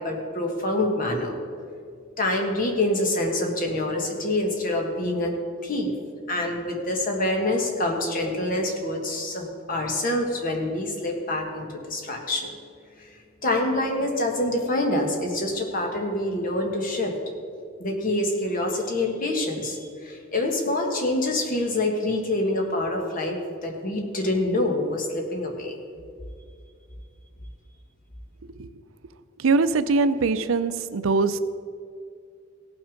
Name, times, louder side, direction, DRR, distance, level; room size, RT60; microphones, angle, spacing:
voice 1, 0.0-1.4 2.2-5.3 5.6-5.9 6.3-12.5 13.0-13.1 13.4-17.1 17.8-25.7, left 1 dB, 45° left, 1 dB, 1.7 m, -26 dB
voice 2, 29.4-31.4, right 4 dB, 80° right, 13 dB, 0.5 m, -22 dB
16.5 x 6.1 x 5.1 m, 2.3 s
head